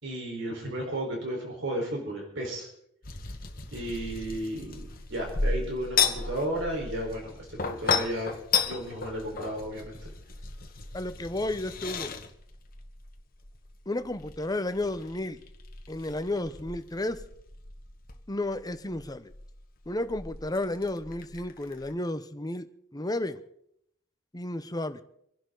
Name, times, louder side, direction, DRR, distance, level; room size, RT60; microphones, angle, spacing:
voice 1, 0.0-2.7 3.7-8.3 8.6-10.1, right 1 dB, 60° right, 0 dB, 4.7 m, -34 dB
sound 1, 3.0-21.9, left 5 dB, 45° left, 1.5 m, -34 dB
voice 2, 10.9-12.1 13.9-15.4 15.9-17.2 18.3-19.3 19.9-22.7 22.9-23.4 24.3-25.0, left 1 dB, 20° left, 11 dB, 0.9 m, -32 dB
26.5 x 11.0 x 4.0 m, 0.72 s
head